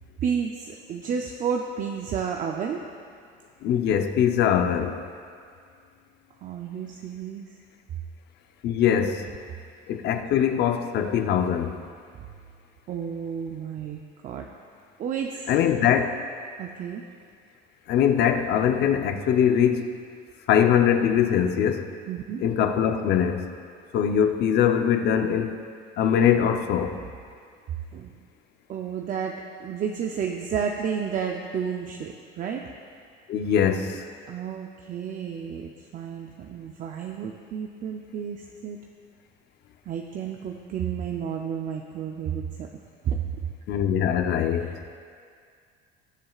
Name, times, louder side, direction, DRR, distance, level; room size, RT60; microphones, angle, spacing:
voice 1, 0.2-2.8 6.4-7.5 12.1-12.3 12.9-14.5 15.0-15.4 16.6-17.0 22.1-22.4 27.9-28.1 28.7-32.7 34.3-38.8 39.9-42.7 43.0-43.2 44.6-45.0, right 7 dB, 40° right, 2 dB, 0.6 m, -31 dB
voice 2, 3.6-5.0 8.6-9.3 9.9-11.8 15.5-16.2 17.9-20.0 20.5-21.9 22.4-23.5 23.9-25.6 26.0-27.0 33.3-34.0 43.7-44.8, left 8 dB, 55° left, 6 dB, 0.8 m, -22 dB
20.0 x 7.5 x 2.4 m, 2.2 s
cardioid pair, 135°, 21 cm